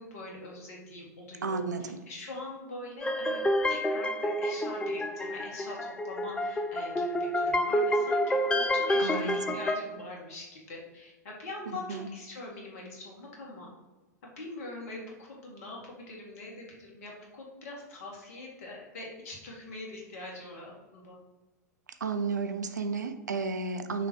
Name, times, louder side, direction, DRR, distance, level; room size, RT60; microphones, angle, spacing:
voice 1, 0.0-13.7 14.4-21.2, left 2 dB, 55° left, -2 dB, 2.1 m, -43 dB
voice 2, 1.4-2.0 9.0-9.6 11.9-12.1 22.0-24.1, right 4 dB, 75° right, 9 dB, 0.6 m, -32 dB
sound 1, 3.0-9.8, equal, 10° left, 0.4 m, -29 dB
6.1 x 4.1 x 4.7 m, 1.2 s
figure-of-eight pair, 95°, 10 cm